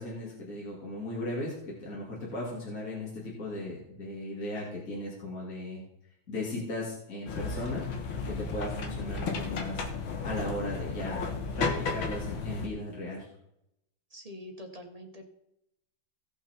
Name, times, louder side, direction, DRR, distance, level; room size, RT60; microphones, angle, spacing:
voice 1, 0.0-1.5 1.8-5.8 6.3-7.8 8.3-9.8 10.2-11.3 11.6-13.3, left 1 dB, 45° left, -4 dB, 2.7 m, -37 dB
sound 1, 7.3-12.7, left 4 dB, 85° left, 2.1 m, -33 dB
voice 2, 14.1-15.2, left 1 dB, 20° right, 2 dB, 1.4 m, -45 dB
17.0 x 5.7 x 4.4 m, 0.80 s
omnidirectional pair, 2.1 m